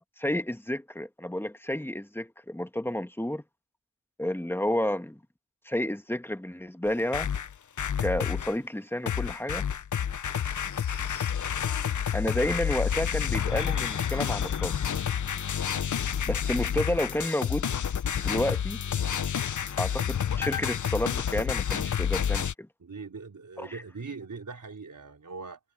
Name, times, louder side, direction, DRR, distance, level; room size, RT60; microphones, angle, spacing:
voice 1, 0.2-3.4 4.2-5.2 5.6-7.3 8.0-9.7 12.1-14.7 16.2-17.7 18.2-18.8 19.8-22.7 23.6-23.8, left 1 dB, 5° left, 1.5 m, -30 dB
sound 1, 6.9-8.5 9.1-22.5, left 8 dB, 70° left, 0.7 m, -29 dB
voice 2, 22.8-25.6, right 4 dB, 70° right, 4.5 m, -41 dB
wide cardioid pair, 65°, 31 cm